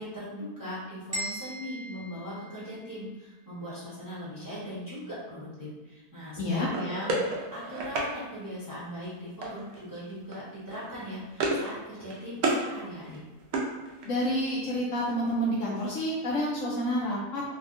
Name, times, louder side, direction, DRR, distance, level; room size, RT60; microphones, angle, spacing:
voice 1, 0.0-13.2, equal, 15° right, -11 dB, 0.7 m, -39 dB
sound 1, 1.1-3.1, equal, 45° right, 1.0 m, -39 dB
voice 2, 6.4-6.7 14.0-17.4, equal, 65° left, -5 dB, 0.8 m, -29 dB
sound 2, 6.7-8.1 9.4-9.8 10.1-10.4 10.7-11.7 12.0-12.6 13.0-14.3, right 2 dB, 70° right, 1.0 m, -31 dB
3.3 x 2.2 x 2.5 m, 1.2 s
omnidirectional pair, 1.6 m